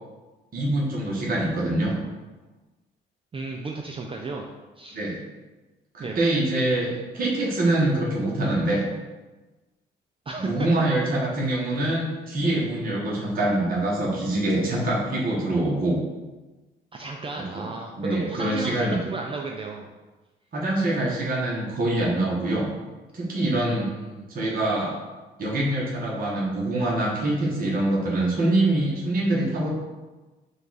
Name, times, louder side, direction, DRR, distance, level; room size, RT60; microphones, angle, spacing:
voice 1, 0.5-1.9 4.9-5.2 5.9-6.9 7.1-8.8 10.4-16.0 17.4-17.7 18.0-19.0 20.5-22.7 23.1-23.9 24.3-25.0 25.4-29.7, right 1 dB, 45° right, -5 dB, 1.2 m, -24 dB
voice 2, 3.3-4.5 4.8-5.0 6.0-6.2 10.3-10.7 16.9-19.9 23.6-24.3, right 3 dB, 25° right, 1 dB, 0.4 m, -34 dB
5.3 x 2.4 x 4.0 m, 1.2 s
cardioid pair, 90°, 20 cm